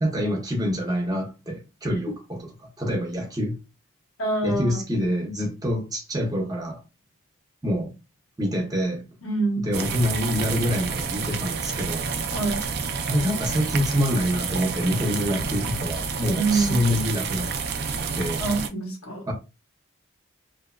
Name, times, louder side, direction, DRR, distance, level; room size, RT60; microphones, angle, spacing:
voice 1, 0.0-2.4 2.8-3.6 4.4-6.8 7.6-7.9 8.4-9.0 9.6-12.1 13.1-17.5 18.1-18.4 19.3-19.4, equal, 15° right, 0.7 m, -26 dB
voice 2, 4.2-4.8 9.2-9.7 12.3-12.6 16.3-16.8 18.4-19.3, right 3 dB, 75° left, 1.0 m, -25 dB
sound 1, 9.7-18.7, right 5 dB, 50° right, 0.4 m, -29 dB
2.7 x 2.5 x 2.2 m
head